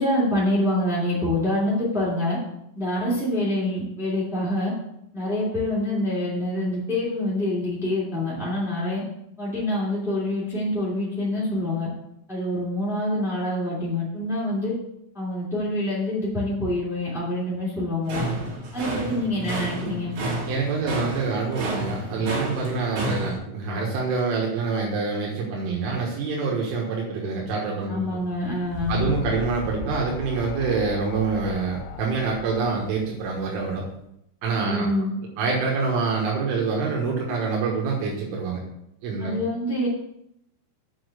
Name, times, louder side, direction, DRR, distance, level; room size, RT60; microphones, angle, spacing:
voice 1, 0.0-2.4 2.7-4.7 5.1-9.0 9.4-11.9 12.3-14.7 15.1-18.2 18.7-20.1 27.9-29.1 34.6-35.1 39.2-39.9, left 1 dB, ahead, -8 dB, 1.5 m, -26 dB
sound 1, 18.0-23.4, right 1 dB, 60° right, 4.6 m, -30 dB
voice 2, 20.5-28.2 28.9-33.8 34.4-34.9 35.4-38.6 39.0-39.4, right 4 dB, 80° right, -2 dB, 3.9 m, -26 dB
sound 2, 28.2-33.8, left 6 dB, 85° left, 3.1 m, -36 dB
8.6 x 5.0 x 6.6 m, 0.79 s
omnidirectional pair, 5.7 m